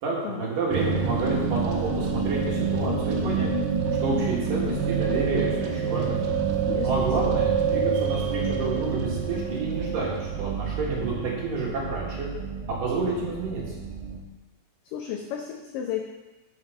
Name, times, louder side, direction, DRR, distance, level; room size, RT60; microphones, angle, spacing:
voice 1, 0.0-3.5 4.0-6.2 6.8-12.3 12.7-13.6, right 3 dB, 60° right, -4 dB, 3.1 m, -29 dB
sound 1, 0.7-14.2, right 5 dB, 80° right, 3.1 m, -27 dB
voice 2, 6.7-7.4 14.8-16.0, left 9 dB, 85° left, 2 dB, 1.9 m, -33 dB
7.5 x 7.4 x 5.0 m, 1.1 s
omnidirectional pair, 4.7 m